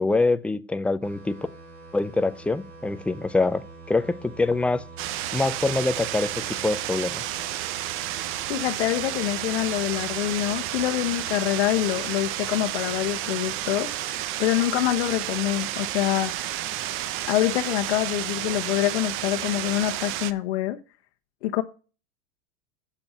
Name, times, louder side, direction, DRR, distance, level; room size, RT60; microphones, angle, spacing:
voice 1, 0.0-1.4 1.9-4.8 5.3-7.2, left 3 dB, 5° left, 0.4 m, -25 dB
sound 1, 1.0-16.4, right 4 dB, 60° right, 5.9 m, -46 dB
sound 2, 5.0-20.3, right 13 dB, 40° right, 0.7 m, -31 dB
voice 2, 8.5-13.9 14.4-16.3 17.3-20.8 21.4-21.6, left 15 dB, 75° left, 1.0 m, -25 dB
8.0 x 7.2 x 5.8 m
supercardioid pair, 135°, 32 cm